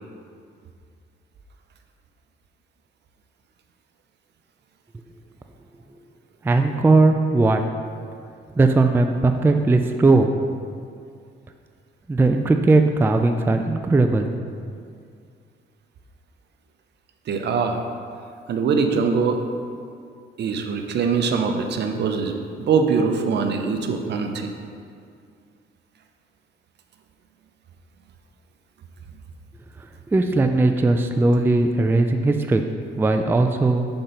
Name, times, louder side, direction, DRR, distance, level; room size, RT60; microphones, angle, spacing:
voice 1, 6.4-7.6 8.6-10.3 12.1-14.3 30.1-32.6 33.0-33.9, right 2 dB, 10° right, 6 dB, 0.3 m, -18 dB
voice 2, 17.3-17.8 18.5-19.4 20.4-24.5, right 5 dB, 60° right, 5 dB, 0.7 m, -22 dB
6.0 x 3.9 x 5.4 m, 2.3 s
cardioid pair, 90°, 20 cm